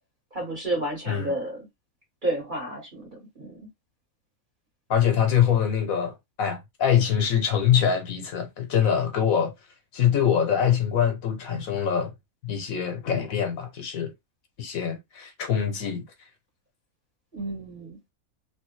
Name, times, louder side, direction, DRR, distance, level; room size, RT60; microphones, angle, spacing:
voice 1, 0.3-1.6 2.2-3.6 17.3-18.1, right 1 dB, 35° right, 1.9 m, -31 dB
voice 2, 4.9-6.1 6.4-9.5 9.9-12.1 12.4-14.1 14.6-16.0, left 8 dB, 75° left, 1.3 m, -24 dB
3.3 x 2.6 x 3.1 m
omnidirectional pair, 1.5 m